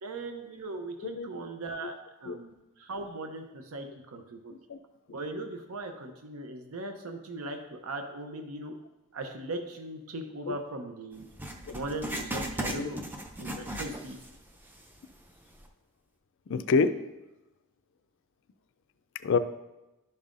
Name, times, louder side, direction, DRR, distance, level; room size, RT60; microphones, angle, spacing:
voice 1, 0.0-1.9 2.2-4.5 5.1-8.7 9.1-11.2 11.7-13.0 13.4-14.2, right 2 dB, 70° right, 5 dB, 0.7 m, -39 dB
voice 2, 1.0-1.4 1.8-1.9 2.2-2.4 3.9-4.0 4.7-4.8 10.5-10.6 11.7-11.8 12.7-12.9 13.6-13.7 16.5-16.9 19.2-19.4, left 4 dB, 55° left, 10 dB, 0.4 m, -27 dB
Writing, 11.4-14.4 14.7-14.8 15.5-15.6, right 1 dB, 10° right, 0.5 m, -36 dB
11.5 x 5.4 x 2.5 m, 1.0 s
head